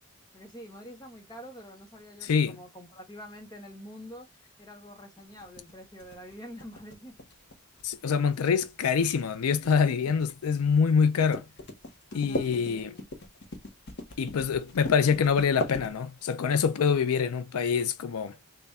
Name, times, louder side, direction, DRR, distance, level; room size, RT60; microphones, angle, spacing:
voice 1, 0.3-4.3 4.6-7.1 12.3-13.1, equal, 20° left, 0.8 m, -46 dB
voice 2, 2.2-2.6 7.8-11.4 12.1-12.9 14.2-18.4, left 6 dB, 85° left, 0.4 m, -25 dB
sound 1, 5.4-16.4, left 1 dB, 50° left, 0.8 m, -39 dB
3.5 x 2.2 x 4.0 m
head